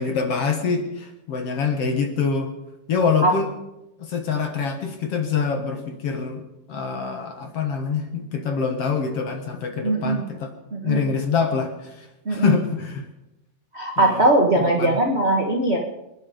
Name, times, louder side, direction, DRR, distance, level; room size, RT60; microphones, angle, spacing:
voice 1, 0.0-2.5 2.9-3.5 4.0-10.5 10.8-13.1 14.0-14.3 14.6-15.0, left 5 dB, 55° left, 5 dB, 1.9 m, -25 dB
voice 2, 9.8-10.3 10.7-11.0 12.2-12.6 13.7-15.8, right 1 dB, 75° right, 0 dB, 0.5 m, -20 dB
26.5 x 10.5 x 5.1 m, 0.93 s
omnidirectional pair, 4.0 m